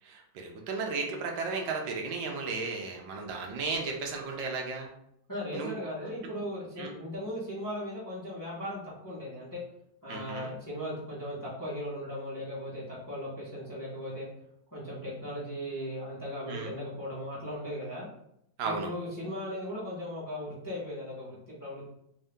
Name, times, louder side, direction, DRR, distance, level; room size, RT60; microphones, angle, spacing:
voice 1, 0.0-4.9 5.5-5.9 6.8-6.9 10.1-10.5 16.5-16.7 18.6-18.9, right 4 dB, 80° right, 2 dB, 1.4 m, -34 dB
voice 2, 5.3-9.6 10.0-14.3 14.7-18.1 18.6-21.8, equal, 15° left, -8 dB, 1.0 m, -37 dB
3.6 x 2.7 x 3.4 m, 0.75 s
omnidirectional pair, 2.0 m